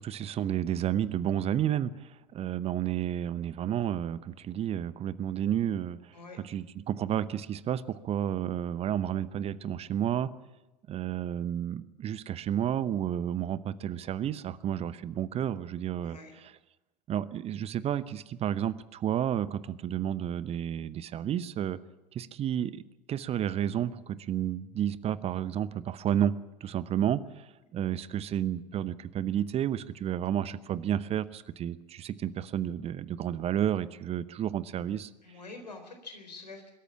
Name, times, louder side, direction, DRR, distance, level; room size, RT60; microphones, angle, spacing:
voice 1, 0.0-10.3 10.9-16.5 17.1-21.8 22.1-22.8 23.1-26.4 26.6-35.1, right 10 dB, 30° right, 17 dB, 0.8 m, -31 dB
voice 2, 16.0-16.4 35.2-36.7, left 3 dB, 80° left, 6 dB, 4.1 m, -46 dB
23.0 x 13.5 x 8.7 m, 1.0 s
figure-of-eight pair, 80°, 21 cm